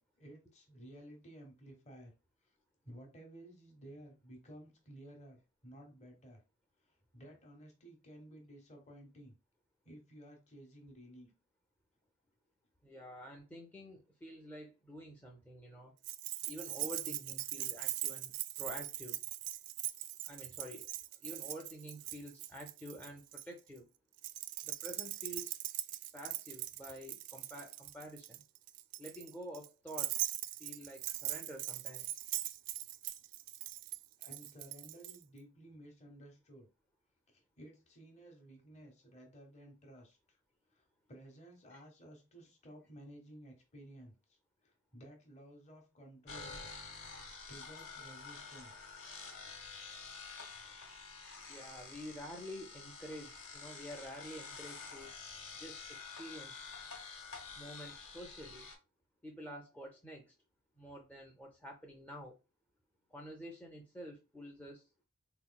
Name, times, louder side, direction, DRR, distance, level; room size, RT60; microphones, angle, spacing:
voice 1, 0.0-2.1 2.4-2.5 2.8-6.4 6.8-9.3 9.8-11.3 34.2-36.7 37.3-40.4 40.7-46.6 47.5-49.0, right 1 dB, 30° left, 0.9 m, -55 dB
voice 2, 12.8-15.9 16.5-19.2 20.2-20.9 21.2-23.9 24.6-25.5 26.1-28.4 29.0-30.3 30.6-32.2 51.5-55.1 55.6-56.5 57.6-58.7 59.2-60.3 60.8-62.4 63.1-64.8, equal, 5° left, 0.5 m, -49 dB
Keys jangling, 16.0-23.5 24.2-35.2, right 15 dB, 80° right, 0.3 m, -41 dB
sound 1, 46.3-58.8, left 5 dB, 70° left, 1.0 m, -49 dB
3.8 x 2.9 x 2.2 m
head